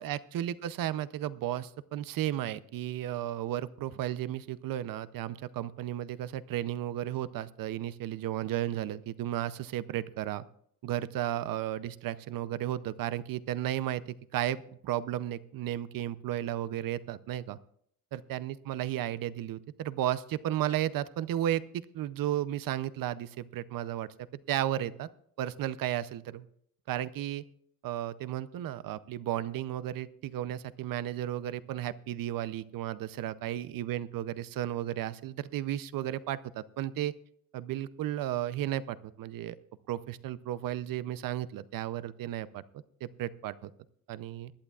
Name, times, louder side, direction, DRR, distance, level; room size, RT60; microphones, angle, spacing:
voice 1, 0.0-10.4 10.8-14.0 14.3-17.6 18.1-25.1 25.4-26.5 26.9-27.4 27.8-37.1 37.5-39.6 39.9-42.6 43.0-43.7 44.1-44.5, right 12 dB, 70° right, 16 dB, 0.6 m, -34 dB
20.5 x 11.5 x 2.4 m, 0.66 s
cardioid pair, 155°, 36 cm